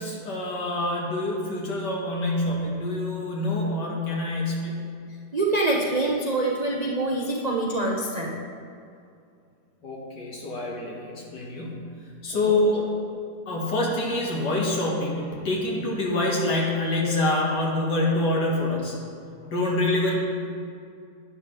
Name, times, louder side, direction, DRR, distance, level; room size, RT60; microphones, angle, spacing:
voice 1, 0.0-4.9 9.8-11.9 12.2-12.9 13.5-19.0 19.5-20.1, left 2 dB, 75° left, -3 dB, 2.3 m, -26 dB
voice 2, 5.3-8.4 12.5-12.6, right 2 dB, 50° right, -2 dB, 0.4 m, -25 dB
11.0 x 9.6 x 3.3 m, 2.4 s
omnidirectional pair, 1.9 m